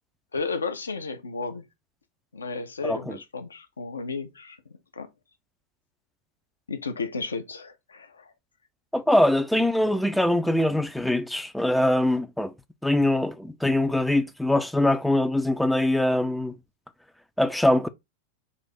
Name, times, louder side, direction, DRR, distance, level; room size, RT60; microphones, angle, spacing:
voice 1, 0.3-1.6 2.3-4.6 4.9-5.1 6.7-8.3, left 4 dB, 75° left, 0.6 m, -33 dB
voice 2, 2.8-3.2 8.9-12.5 12.8-16.5 17.4-17.9, left 1 dB, ahead, 0.4 m, -23 dB
3.7 x 2.6 x 4.2 m
figure-of-eight pair, 90°, 0 cm